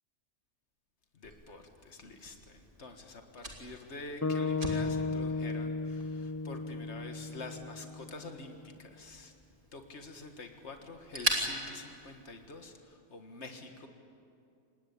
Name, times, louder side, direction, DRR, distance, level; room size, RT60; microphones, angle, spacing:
voice 1, 1.2-9.3 9.7-13.9, left 3 dB, 75° left, 5 dB, 2.0 m, -47 dB
Fire, 1.2-12.8, right 1 dB, 45° right, 3.1 m, -42 dB
sound 1, 4.2-8.5, left 3 dB, 20° left, 0.4 m, -35 dB
26.0 x 20.0 x 8.6 m, 2.5 s
omnidirectional pair, 1.2 m